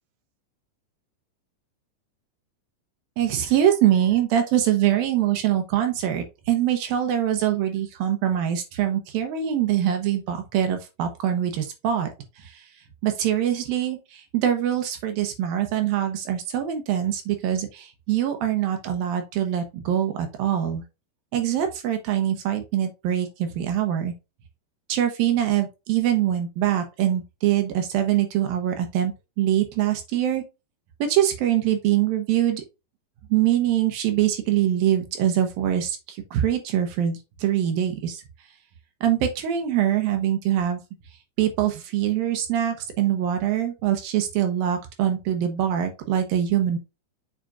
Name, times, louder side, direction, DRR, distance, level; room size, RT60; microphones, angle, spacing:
voice 1, 3.2-12.1 12.4-12.6 13.0-20.8 21.3-24.1 24.9-30.4 31.0-32.6 33.3-38.2 39.0-40.8 41.4-46.8, right 11 dB, 70° right, 6 dB, 2.4 m, -23 dB
7.3 x 5.8 x 2.5 m, 0.26 s
omnidirectional pair, 5.1 m